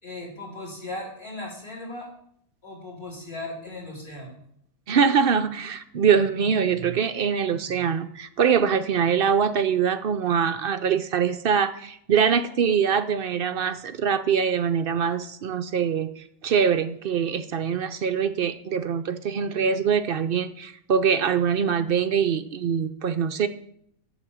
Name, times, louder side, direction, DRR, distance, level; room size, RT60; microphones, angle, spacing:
voice 1, 0.0-2.1 2.6-4.4, left 2 dB, 45° left, -3 dB, 4.1 m, -37 dB
voice 2, 4.9-23.5, right 7 dB, 65° right, 11 dB, 0.5 m, -23 dB
8.1 x 7.3 x 7.1 m, 0.71 s
omnidirectional pair, 1.5 m